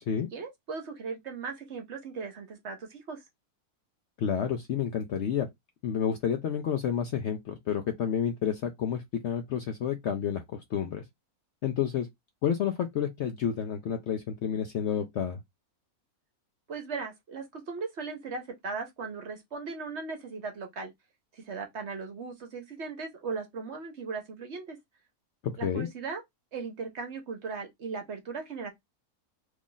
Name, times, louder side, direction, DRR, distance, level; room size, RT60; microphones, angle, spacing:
voice 1, 0.3-3.2 16.7-20.9 21.3-24.8 25.6-26.2 26.5-28.7, right 4 dB, 55° right, 0.9 m, -38 dB
voice 2, 4.2-5.5 5.8-11.0 11.6-12.1 12.4-15.4 25.6-25.9, left 8 dB, 70° left, 0.7 m, -30 dB
3.0 x 2.4 x 3.8 m
omnidirectional pair, 1.6 m